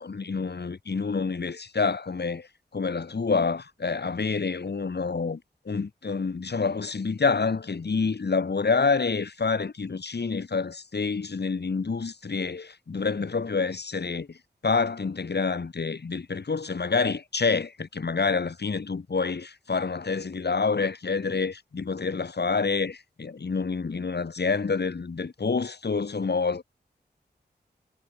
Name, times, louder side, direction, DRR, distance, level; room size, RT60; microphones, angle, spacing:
voice 1, 0.0-2.5 2.7-5.4 5.7-14.4 14.6-26.6, left 4 dB, 70° left, 7.7 m, -27 dB
wide cardioid pair, 60°, 18 cm